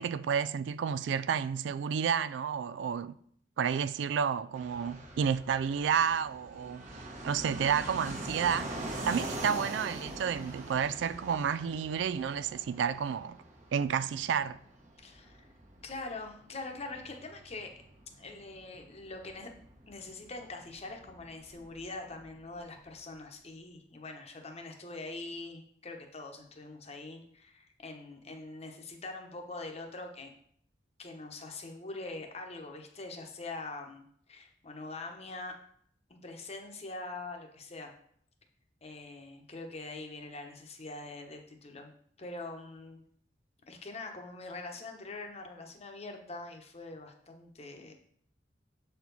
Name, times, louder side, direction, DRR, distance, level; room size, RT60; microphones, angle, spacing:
voice 1, 0.0-3.2 3.6-6.8 7.2-8.7 9.1-13.4 13.7-14.6, right 7 dB, 90° right, 0.3 m, -31 dB
Fixed-wing aircraft airplane, 4.5-22.9, right 1 dB, 45° right, 1.2 m, -44 dB
voice 2, 15.0-15.5 15.8-17.7 18.1-19.5 19.9-30.3 31.0-35.6 36.1-37.9 38.8-43.0 43.7-47.9, left 2 dB, 35° left, 0.9 m, -43 dB
7.2 x 4.5 x 4.0 m
head